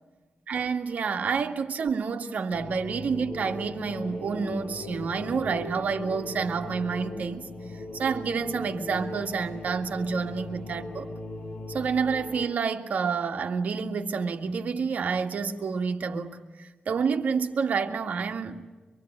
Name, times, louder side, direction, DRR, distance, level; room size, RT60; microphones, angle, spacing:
voice 1, 0.5-7.5 7.7-11.1 11.7-18.6, right 5 dB, 70° right, 2.0 m, -29 dB
sound 1, 2.5-12.5, left 2 dB, 75° left, 6.6 m, -38 dB
25.5 x 23.5 x 8.8 m
wide cardioid pair, 95°, 3 cm